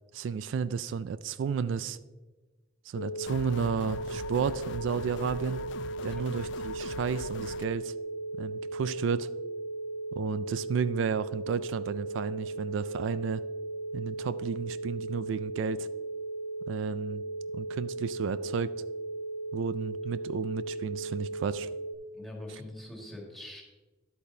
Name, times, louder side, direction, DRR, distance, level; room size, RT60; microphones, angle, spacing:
voice 1, 0.1-2.0 2.9-5.6 6.0-7.9 8.4-9.3 10.1-13.4 13.9-15.9 16.7-17.2 17.5-18.7 19.5-21.7, right 6 dB, 85° right, 15 dB, 0.3 m, -32 dB
sound 1, 3.0-22.0, right 2 dB, 85° left, 1.2 m, -37 dB
sound 2, 3.3-7.7, left 6 dB, 65° left, 0.3 m, -42 dB
voice 2, 6.0-6.3 22.1-23.6, left 1 dB, ahead, -2 dB, 1.8 m, -43 dB
10.5 x 8.4 x 2.7 m, 1.2 s
head